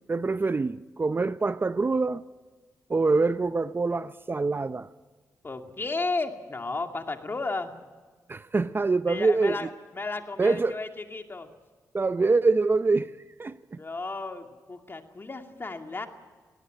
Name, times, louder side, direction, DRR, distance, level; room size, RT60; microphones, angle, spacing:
voice 1, 0.1-2.2 2.9-4.9 8.3-9.7 10.4-10.8 11.9-13.1 13.4-13.8, right 3 dB, 35° right, 0.6 m, -25 dB
voice 2, 5.4-7.7 9.1-11.5 13.8-16.1, left 3 dB, 35° left, 2.4 m, -33 dB
19.5 x 17.0 x 9.6 m
cardioid pair, 60°, 6 cm